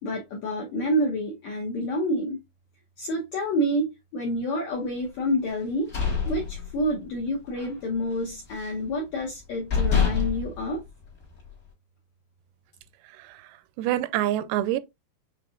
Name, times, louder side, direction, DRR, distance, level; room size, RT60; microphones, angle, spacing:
voice 1, 0.0-2.4 3.0-5.9 6.3-10.8, equal, 80° left, 1.6 m, -28 dB
sound 1, 5.6-7.2 7.5-7.8 8.1-8.9 9.3-9.4 9.7-11.5, left 6 dB, 40° left, 1.2 m, -27 dB
voice 2, 13.0-14.8, right 13 dB, 90° right, 2.5 m, -27 dB
6.9 x 3.0 x 2.4 m
omnidirectional pair, 4.4 m